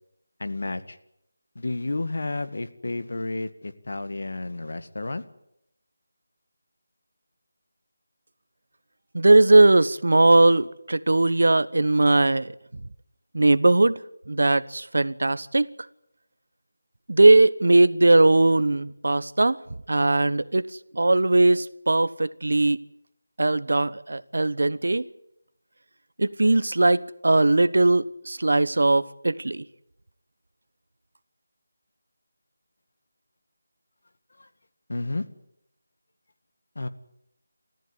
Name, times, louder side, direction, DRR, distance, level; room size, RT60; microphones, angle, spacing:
voice 1, 0.4-1.0 1.6-5.2 34.4-34.5 34.9-35.2 36.8-36.9, left 2 dB, 60° left, 1.8 m, -31 dB
voice 2, 9.1-12.5 13.3-14.0 14.3-15.7 17.1-19.6 19.9-22.8 23.4-25.1 26.2-29.6, right 2 dB, 75° right, 1.0 m, -19 dB
29.0 x 14.5 x 9.8 m
figure-of-eight pair, 180°, 0 cm